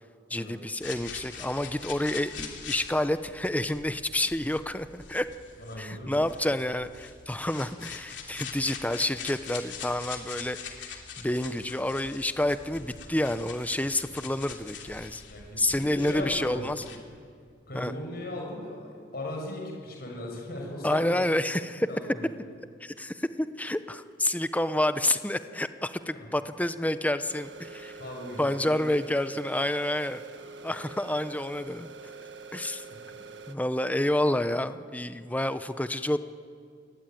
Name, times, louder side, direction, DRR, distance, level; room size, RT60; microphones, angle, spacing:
voice 1, 0.3-5.3 5.8-15.2 15.6-16.8 17.7-17.9 20.8-21.9 22.8-27.9 28.4-30.2 30.6-31.9 32.5-32.8 33.5-36.2, left 1 dB, 10° left, 11 dB, 0.8 m, -29 dB
sound 1, 0.8-17.0, left 6 dB, 75° left, 3.1 m, -43 dB
voice 2, 5.6-6.2 15.3-16.8 17.7-21.4 21.9-22.3 26.1-26.3 28.0-28.9 32.9-33.2, left 1 dB, 55° left, 0 dB, 6.6 m, -38 dB
sound 2, 27.3-33.6, right 4 dB, 75° right, 1.5 m, -45 dB
29.0 x 20.5 x 9.3 m, 2.2 s
head